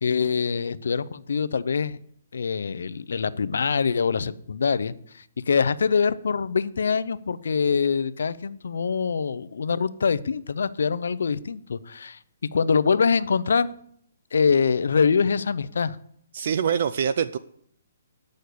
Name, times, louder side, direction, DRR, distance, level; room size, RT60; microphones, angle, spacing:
voice 1, 0.0-2.0 2.3-12.2 12.5-13.7 14.3-16.0, left 5 dB, 70° left, 16 dB, 0.6 m, -24 dB
voice 2, 16.3-17.4, right 7 dB, 45° right, 14 dB, 0.4 m, -24 dB
9.3 x 6.5 x 8.4 m, 0.67 s
hypercardioid pair, 170°, 0 cm